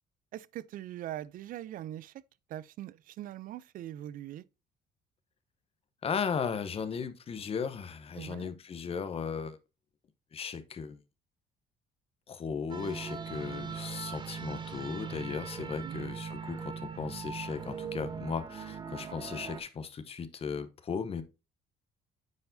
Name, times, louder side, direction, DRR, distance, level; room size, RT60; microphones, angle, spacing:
voice 1, 0.3-2.1 2.5-4.4 8.1-8.5 15.8-16.0, right 12 dB, 55° right, 0.4 m, -42 dB
voice 2, 6.0-9.6 10.3-11.0 12.3-21.2, left 6 dB, 35° left, 0.8 m, -36 dB
sound 1, 12.7-19.6, right 6 dB, 25° right, 1.0 m, -40 dB
9.5 x 4.5 x 2.6 m
cardioid pair, 110°, 17 cm